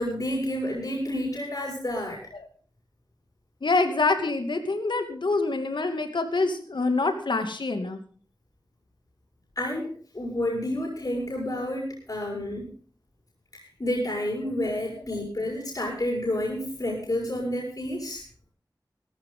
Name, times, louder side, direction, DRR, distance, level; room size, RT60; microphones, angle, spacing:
voice 1, 0.0-2.2 9.6-12.7 13.8-18.2, left 1 dB, 50° left, -1 dB, 5.9 m, -30 dB
voice 2, 3.6-8.0 15.1-15.2, left 3 dB, 90° left, 7 dB, 2.5 m, -26 dB
18.0 x 14.5 x 3.8 m, 0.43 s
wide cardioid pair, 70°, 8 cm